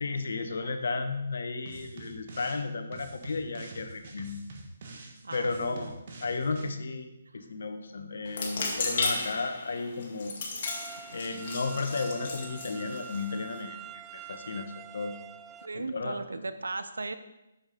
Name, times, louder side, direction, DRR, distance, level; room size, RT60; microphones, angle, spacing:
voice 1, 0.0-4.4 5.3-5.9 6.2-7.1 7.3-10.3 11.1-13.8 14.1-15.2 15.7-16.2, left 3 dB, 70° left, 7 dB, 1.2 m, -33 dB
sound 1, 1.7-2.6 2.9-6.7, right 2 dB, 50° right, 1.6 m, -46 dB
voice 2, 5.2-6.0 15.6-17.2, right 3 dB, 85° right, 11 dB, 0.7 m, -37 dB
sound 2, 8.3-13.6, left 3 dB, 45° left, 2.0 m, -35 dB
sound 3, 10.7-15.7, right 9 dB, 15° right, 0.5 m, -46 dB
7.2 x 6.9 x 5.2 m, 0.95 s
hypercardioid pair, 150°, 0 cm